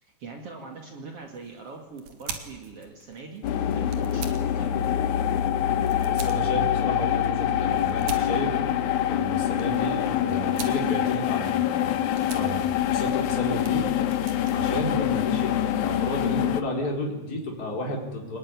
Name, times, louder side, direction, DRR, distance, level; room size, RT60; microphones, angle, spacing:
voice 1, 0.0-4.9, right 4 dB, 50° right, 3 dB, 3.0 m, -42 dB
sound 1, 1.2-15.7, right 6 dB, 90° right, 3.5 m, -45 dB
sound 2, 3.4-16.6, left 10 dB, 75° left, 2.5 m, -25 dB
voice 2, 6.1-8.5 9.1-12.0 12.3-12.6 12.9-13.9 14.5-18.4, left 1 dB, 30° left, 0 dB, 4.2 m, -32 dB
23.5 x 20.0 x 9.7 m, 1.1 s
omnidirectional pair, 3.5 m